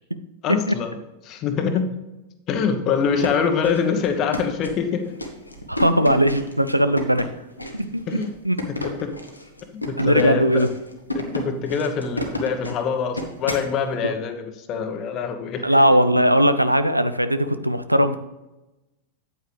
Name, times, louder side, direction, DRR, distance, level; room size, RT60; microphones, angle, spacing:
voice 1, 0.4-0.9 1.2-1.9 2.5-5.1 8.1-8.3 8.7-9.1 9.7-10.6 11.1-15.7, left 6 dB, 35° left, 6 dB, 1.2 m, -24 dB
sound 1, 3.0-13.7, left 1 dB, 85° left, 1.3 m, -32 dB
voice 2, 5.7-7.3 7.7-8.0 8.4-8.6 10.0-10.7 15.6-18.2, equal, 85° right, 12 dB, 0.5 m, -19 dB
9.0 x 8.7 x 3.4 m, 1.0 s
figure-of-eight pair, 90°, 0 cm